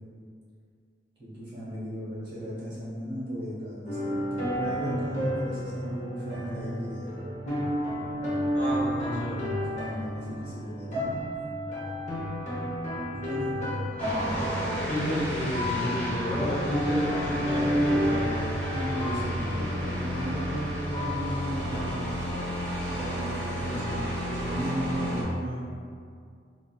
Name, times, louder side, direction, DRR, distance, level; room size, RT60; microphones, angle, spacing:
voice 1, 1.2-7.2 9.3-11.2 13.1-13.5 18.7-22.1 22.9-25.6, equal, 30° right, -11 dB, 1.2 m, -35 dB
sound 1, 3.9-22.4, equal, 40° left, 0.7 m, -32 dB
voice 2, 8.5-9.4 14.8-18.4 23.5-24.0, equal, 70° left, -9 dB, 1.0 m, -31 dB
sound 2, 14.0-25.2, equal, 10° left, 0.9 m, -32 dB
3.6 x 2.2 x 2.2 m, 2.2 s
head